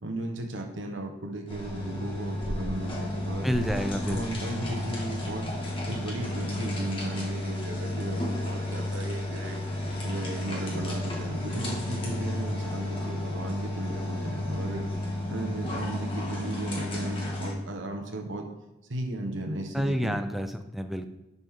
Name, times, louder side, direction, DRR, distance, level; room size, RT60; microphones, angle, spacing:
voice 1, 0.0-3.5 4.1-5.5 5.9-9.6 10.0-14.9 15.3-18.5 18.9-20.2, right 1 dB, 90° right, 3 dB, 1.3 m, -35 dB
sound 1, 1.5-17.5, left 1 dB, 30° left, 1.9 m, -32 dB
voice 2, 3.4-4.5 19.7-21.1, equal, ahead, 7 dB, 0.5 m, -29 dB
11.0 x 5.4 x 3.8 m, 0.98 s
head